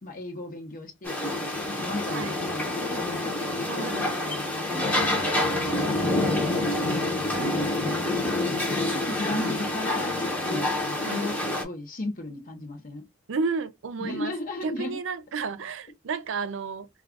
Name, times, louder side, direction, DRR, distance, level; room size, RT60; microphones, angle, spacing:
voice 1, 0.0-6.5 6.8-8.4 8.9-13.0 14.0-15.0, left 2 dB, 45° left, 0.7 m, -36 dB
sound 1, 1.0-11.6, left 2 dB, 10° left, 0.8 m, -27 dB
voice 2, 3.7-4.0 7.3-7.6 9.3-9.6 11.0-11.3 13.3-14.3 14.6-16.9, right 4 dB, 65° right, 0.5 m, -32 dB
2.3 x 2.3 x 3.5 m
head